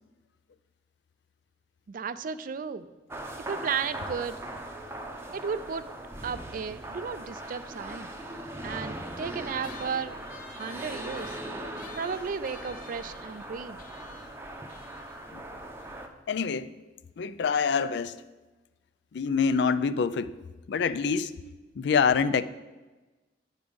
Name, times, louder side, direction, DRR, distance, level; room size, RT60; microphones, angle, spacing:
voice 1, 1.9-2.9 3.5-4.4 5.3-5.9 6.2-8.1 8.6-10.2 10.5-11.4 12.0-13.8, right 6 dB, 50° right, 0.4 m, -34 dB
sound 1, 3.1-16.1, right 1 dB, 15° right, 0.7 m, -40 dB
sound 2, 9.6-16.4, left 5 dB, 50° left, 0.8 m, -51 dB
voice 2, 16.3-16.7 17.2-18.2 19.1-20.3 20.7-21.4 21.7-22.5, left 5 dB, 70° left, 0.4 m, -26 dB
9.7 x 5.3 x 5.1 m
head